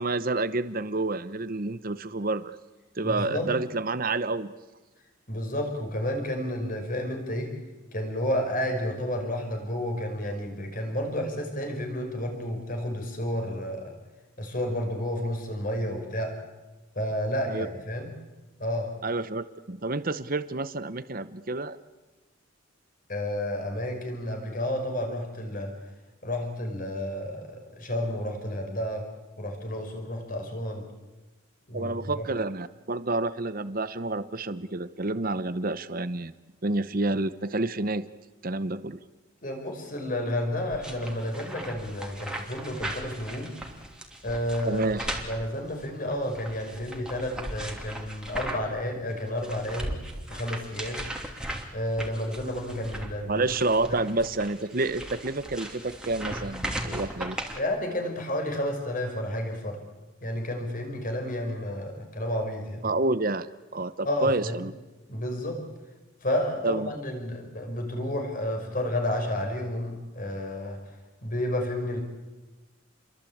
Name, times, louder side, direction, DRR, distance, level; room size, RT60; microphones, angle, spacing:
voice 1, 0.0-2.6 3.0-4.5 17.5-17.7 19.0-21.8 31.7-36.3 36.6-38.1 38.4-39.0 44.6-45.1 53.3-57.4 62.8-63.5 63.7-64.7 66.6-66.9, right 2 dB, 45° right, 13 dB, 0.9 m, -29 dB
voice 2, 3.0-3.5 5.3-7.5 7.9-13.9 14.4-16.3 17.0-18.1 18.6-18.9 23.1-25.7 26.2-29.1 29.4-30.8 31.7-32.2 39.4-43.5 44.2-44.9 45.3-50.0 50.3-51.0 51.7-53.6 53.9-54.0 57.6-59.8 60.2-62.9 64.0-64.6 65.1-65.6 66.2-71.0 71.2-72.0, left 1 dB, 40° left, 4 dB, 5.4 m, -31 dB
sound 1, 40.7-48.8 49.1-57.6, right 1 dB, 5° right, 2.9 m, -37 dB
28.5 x 22.5 x 8.7 m, 1.2 s
head